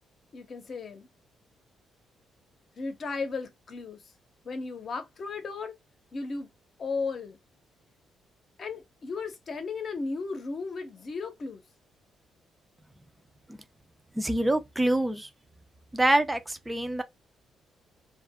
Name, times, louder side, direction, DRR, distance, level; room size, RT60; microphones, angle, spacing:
voice 1, 0.3-1.1 2.8-4.0 4.4-5.7 6.1-6.5 6.8-7.4 8.6-11.6, left 4 dB, 50° left, 0.8 m, -35 dB
voice 2, 14.2-15.3 15.9-17.0, right 1 dB, 10° right, 0.5 m, -25 dB
2.4 x 2.0 x 3.4 m
cardioid pair, 90°, 0 cm